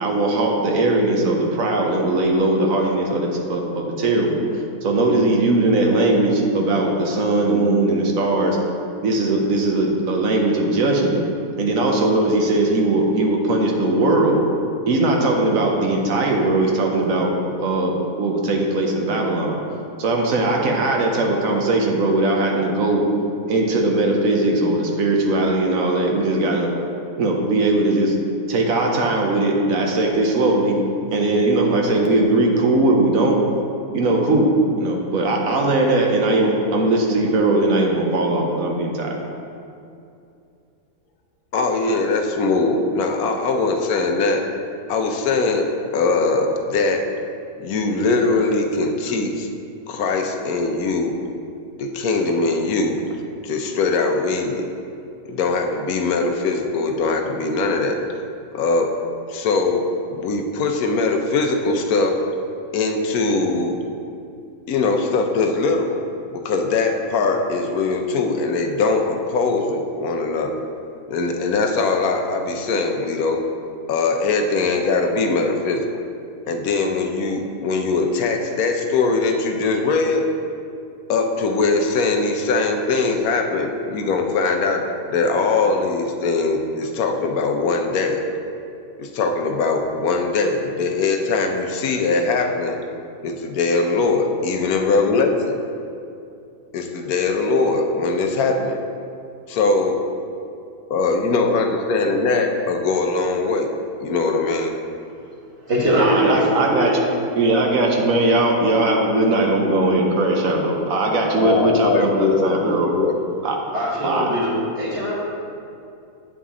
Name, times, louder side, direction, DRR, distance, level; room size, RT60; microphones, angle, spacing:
voice 1, 0.0-4.4 4.8-8.6 9.0-11.2 11.6-14.5 14.9-17.3 17.6-19.6 20.0-23.0 23.5-26.7 27.2-28.1 28.5-30.8 31.1-33.4 33.9-39.2 106.0-106.9 107.4-112.9 113.4-113.6 114.0-114.2, right 2 dB, 70° right, 1 dB, 1.2 m, -19 dB
voice 2, 41.5-44.4 44.9-47.0 47.6-49.5 49.9-51.1 51.8-53.0 53.4-54.6 55.3-58.0 58.5-58.9 59.3-59.8 60.1-62.2 62.7-63.8 64.7-66.0 66.3-70.5 71.1-73.4 73.9-75.9 76.5-80.3 81.1-84.8 85.1-88.2 89.0-92.8 93.2-95.6 96.7-98.8 99.5-100.0 100.9-103.7 104.0-104.7 111.4-113.2, left 3 dB, 85° left, 4 dB, 1.2 m, -21 dB
voice 3, 105.6-106.9 113.7-115.1, equal, 50° right, -5 dB, 1.7 m, -21 dB
8.3 x 5.0 x 3.7 m, 2.6 s
omnidirectional pair, 1.5 m